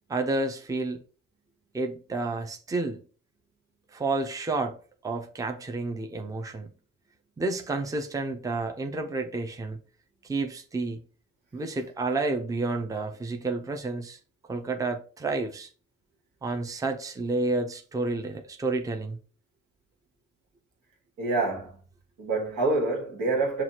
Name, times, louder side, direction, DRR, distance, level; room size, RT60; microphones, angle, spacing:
voice 1, 0.1-1.0 1.7-3.0 3.9-4.8 5.0-6.7 7.4-9.8 10.2-11.0 11.5-14.2 14.5-15.7 16.4-19.2, right 3 dB, 10° right, 0.6 m, -30 dB
voice 2, 21.2-21.7 22.2-23.6, right 3 dB, 85° right, 1.5 m, -26 dB
6.0 x 2.4 x 2.8 m
cardioid pair, 90°, 30 cm